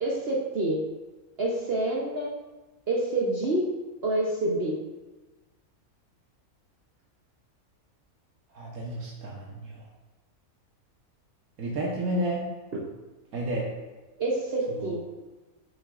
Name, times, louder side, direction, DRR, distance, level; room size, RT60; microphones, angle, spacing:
voice 1, 0.0-0.8 1.4-2.4 2.9-3.7 4.0-4.8 14.2-15.0, right 2 dB, 50° right, -3 dB, 0.9 m, -27 dB
voice 2, 8.5-9.8 11.6-12.5 13.3-13.7 14.7-15.0, right 1 dB, 80° right, -3 dB, 1.4 m, -31 dB
7.7 x 5.4 x 2.4 m, 1.2 s
omnidirectional pair, 1.5 m